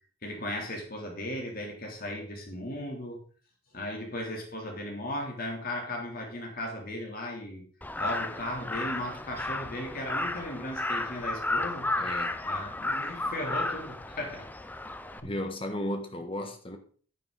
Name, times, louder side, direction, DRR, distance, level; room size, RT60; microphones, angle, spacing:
voice 1, 0.2-3.2 3.7-7.7 8.0-11.9 12.4-14.5 15.2-15.3, left 1 dB, 45° left, 3.1 m, -36 dB
Crow, 7.8-15.2, left 2 dB, 10° left, 0.5 m, -33 dB
voice 2, 12.0-12.4 15.2-16.8, left 1 dB, 25° left, 1.5 m, -34 dB
9.7 x 9.3 x 4.0 m
head